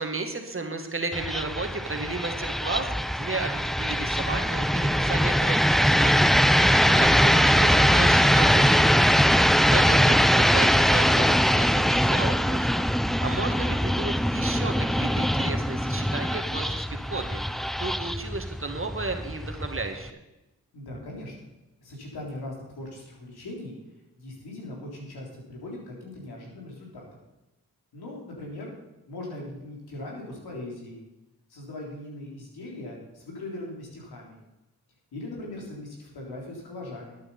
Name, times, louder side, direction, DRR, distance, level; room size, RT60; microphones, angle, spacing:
voice 1, 0.0-9.0 9.7-20.2, right 3 dB, 35° right, 5 dB, 2.0 m, -34 dB
sound 1, 1.1-20.1, equal, ahead, 0.4 m, -22 dB
voice 2, 20.7-21.3 21.8-23.7 24.2-27.2 27.9-28.7 29.1-31.0 31.5-34.4 35.1-37.2, left 1 dB, 75° left, -2 dB, 3.8 m, -39 dB
11.5 x 9.1 x 5.6 m, 0.99 s
supercardioid pair, 40°, 38 cm